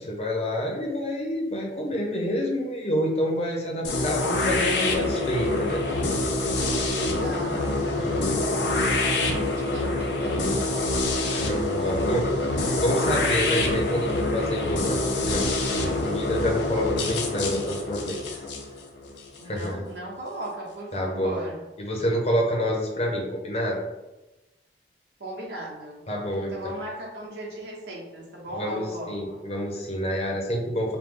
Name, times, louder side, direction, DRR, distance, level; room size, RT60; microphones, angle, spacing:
voice 1, 0.0-5.8 7.9-8.5 11.4-12.3 12.8-18.4 19.4-19.9 20.9-21.4 21.8-23.8 26.1-26.8 28.5-31.0, equal, 35° left, -1 dB, 0.8 m, -28 dB
sound 1, 3.8-19.7, left 2 dB, 80° left, 0.7 m, -26 dB
voice 2, 6.9-11.1 11.7-13.3 19.4-21.6 25.2-26.1 26.5-29.4, right 1 dB, 75° right, -2 dB, 1.2 m, -38 dB
4.7 x 2.2 x 3.7 m, 1.0 s
head